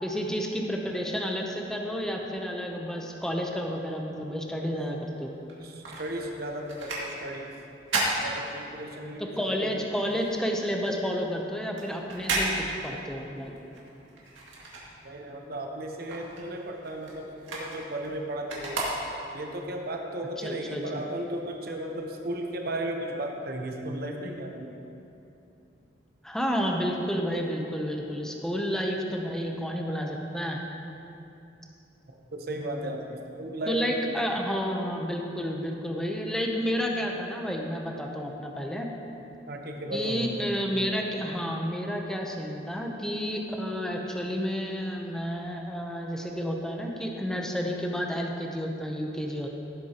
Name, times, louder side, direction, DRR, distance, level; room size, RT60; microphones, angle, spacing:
voice 1, 0.0-5.3 9.4-13.5 20.4-21.0 26.2-30.6 33.7-38.9 39.9-49.5, equal, 5° left, 1 dB, 0.7 m, -31 dB
voice 2, 4.6-5.0 5.6-7.5 8.2-9.9 15.0-19.0 19.3-24.7 32.3-34.1 39.5-40.5, right 1 dB, 55° right, 2 dB, 0.9 m, -35 dB
sound 1, 5.4-9.1 9.4-15.4 15.7-19.5 20.0-20.1, right 2 dB, 80° right, 2.1 m, -34 dB
16.5 x 7.8 x 2.9 m, 2.8 s
head